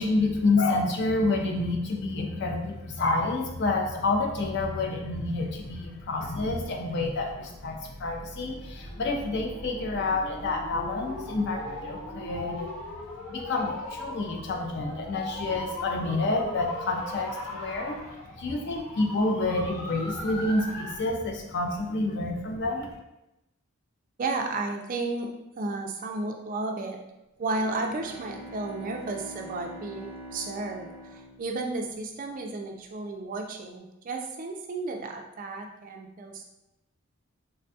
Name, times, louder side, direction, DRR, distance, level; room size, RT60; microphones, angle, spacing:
voice 1, 0.0-12.7 13.3-18.0 18.4-22.9, left 2 dB, 50° left, 2 dB, 0.4 m, -28 dB
sound 1, 8.6-21.1, left 1 dB, 80° left, 0.8 m, -39 dB
voice 2, 24.2-25.3 25.6-27.0 27.4-36.4, right 3 dB, 40° right, 3 dB, 0.3 m, -33 dB
Bowed string instrument, 27.4-32.3, equal, 30° left, 0.8 m, -45 dB
3.3 x 2.2 x 2.6 m, 0.93 s
head